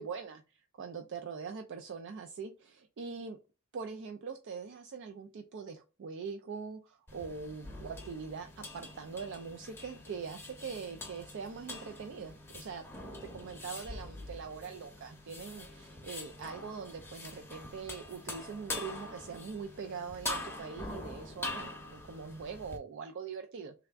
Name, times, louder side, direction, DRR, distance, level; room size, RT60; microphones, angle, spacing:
voice 1, 0.0-3.4 3.7-8.5 8.7-23.7, right 5 dB, 55° right, 6 dB, 0.4 m, -43 dB
sound 1, 7.1-22.8, left 2 dB, 10° left, 0.8 m, -44 dB
3.4 x 3.3 x 2.4 m, 0.31 s
head